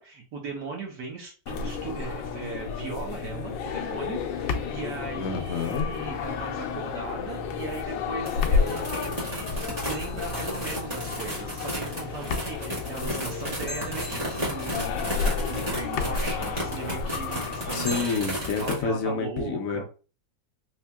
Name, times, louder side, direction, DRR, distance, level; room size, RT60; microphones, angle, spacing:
voice 1, 0.0-18.2 18.6-19.8, right 3 dB, 70° right, 1.6 m, -38 dB
sound 1, 1.5-18.0, left 5 dB, 80° left, 1.3 m, -31 dB
voice 2, 5.2-5.9 17.7-19.8, left 4 dB, 60° left, 1.0 m, -28 dB
sound 2, 8.3-18.8, equal, 25° right, 1.1 m, -34 dB
sound 3, 9.9-11.4 13.7-15.3 17.9-18.9, left 1 dB, 35° left, 1.6 m, -43 dB
4.3 x 2.7 x 2.3 m
omnidirectional pair, 2.0 m